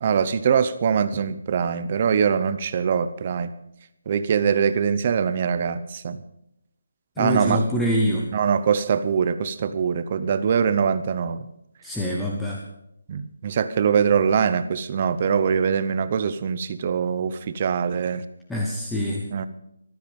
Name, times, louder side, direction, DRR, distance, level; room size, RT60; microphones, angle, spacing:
voice 1, 0.0-3.5 4.1-6.2 7.2-7.6 8.3-11.4 13.1-18.2 19.3-19.5, right 7 dB, 25° right, 12 dB, 0.7 m, -23 dB
voice 2, 7.2-8.3 11.8-12.6 18.5-19.3, equal, ahead, -2 dB, 0.9 m, -25 dB
15.5 x 13.0 x 5.4 m, 0.80 s
hypercardioid pair, 175°, 0 cm